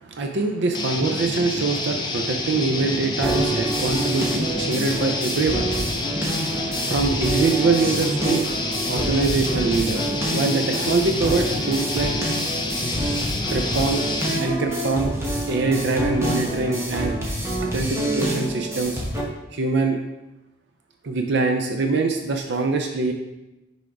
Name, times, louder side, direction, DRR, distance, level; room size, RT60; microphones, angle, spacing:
voice 1, 0.0-8.5 8.9-12.1 13.5-14.0 14.4-15.1 15.5-17.1 17.6-19.0 19.5-20.0 21.0-23.1, right 3 dB, 55° right, 4 dB, 0.5 m, -24 dB
sound 1, 0.7-14.5, left 2 dB, 20° left, 0.5 m, -28 dB
sound 2, 3.2-19.2, right 1 dB, 15° right, 0.9 m, -27 dB
6.2 x 3.5 x 4.7 m, 0.97 s
head